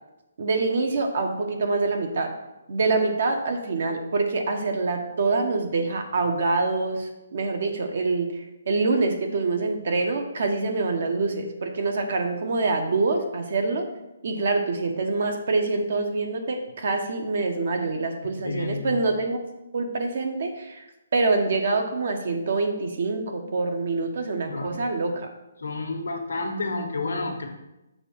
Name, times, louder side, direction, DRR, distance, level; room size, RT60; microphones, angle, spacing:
voice 1, 0.4-2.3 2.7-8.4 8.7-13.9 14.2-19.4 19.7-20.8 21.1-25.3, right 3 dB, 55° right, 4 dB, 1.0 m, -25 dB
voice 2, 18.3-19.0 24.5-24.8 25.6-27.5, left 3 dB, 85° left, 1 dB, 1.2 m, -30 dB
6.7 x 3.5 x 6.1 m, 0.96 s
hypercardioid pair, 165°, 0 cm